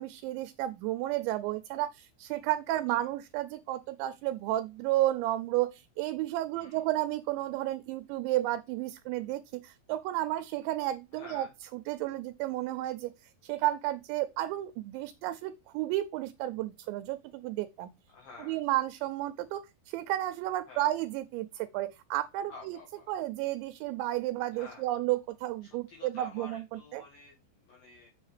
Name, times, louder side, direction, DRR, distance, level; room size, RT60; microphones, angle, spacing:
voice 1, 0.0-11.5 11.9-17.9 18.4-19.6 19.9-22.8 23.1-26.6 26.9-27.0, right 15 dB, 85° right, 2.7 m, -32 dB
voice 2, 2.7-3.1 6.5-6.8 11.1-11.5 18.1-18.6 20.7-20.9 22.4-23.1 24.5-24.9 25.6-28.1, left 4 dB, 60° left, 2.9 m, -50 dB
7.4 x 7.1 x 3.3 m
omnidirectional pair, 5.4 m